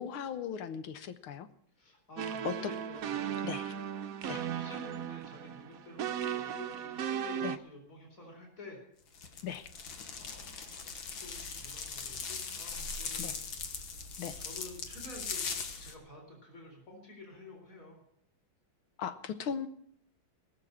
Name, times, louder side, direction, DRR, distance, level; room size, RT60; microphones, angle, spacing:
voice 1, 0.0-1.5 2.4-2.5 3.4-3.7 4.3-4.4 7.4-7.6 9.4-9.7 13.2-13.3 14.2-14.4 19.0-19.7, left 8 dB, 85° left, 11 dB, 1.9 m, -38 dB
voice 2, 1.8-3.5 4.4-8.8 10.2-10.8 11.2-15.5 15.8-18.0, left 2 dB, 40° left, 0 dB, 4.4 m, -50 dB
sound 1, 2.2-7.6, right 9 dB, 60° right, 0.9 m, -36 dB
sound 2, 9.1-15.9, left 5 dB, 70° left, 2.2 m, -40 dB
19.5 x 6.8 x 8.7 m, 0.66 s
omnidirectional pair, 2.2 m